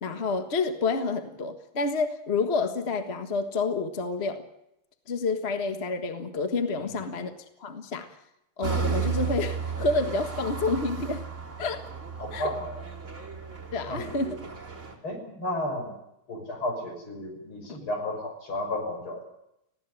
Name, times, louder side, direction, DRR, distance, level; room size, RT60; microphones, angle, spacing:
voice 1, 0.0-4.4 5.1-7.3 7.6-8.1 8.6-11.2 11.6-11.8 12.3-12.5 13.7-14.4 17.7-17.8, left 3 dB, 30° left, 7 dB, 1.7 m, -29 dB
sound 1, 8.6-14.9, right 6 dB, 35° right, 4.0 m, -33 dB
voice 2, 12.2-12.8 13.9-14.4 15.0-15.9 16.3-19.2, left 1 dB, 75° left, 3 dB, 6.9 m, -33 dB
19.5 x 16.0 x 9.9 m, 0.83 s
omnidirectional pair, 2.3 m